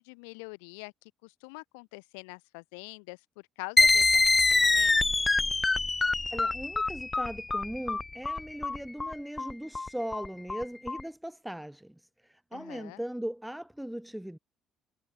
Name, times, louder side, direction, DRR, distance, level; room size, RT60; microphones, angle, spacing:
voice 1, 0.0-5.3 12.5-13.0, left 35 dB, 70° left, 2.4 m, -45 dB
sound 1, 3.8-11.0, left 3 dB, 20° left, 0.3 m, -25 dB
voice 2, 6.3-14.4, equal, 5° right, 1.5 m, -39 dB
figure-of-eight pair, 50°, 0 cm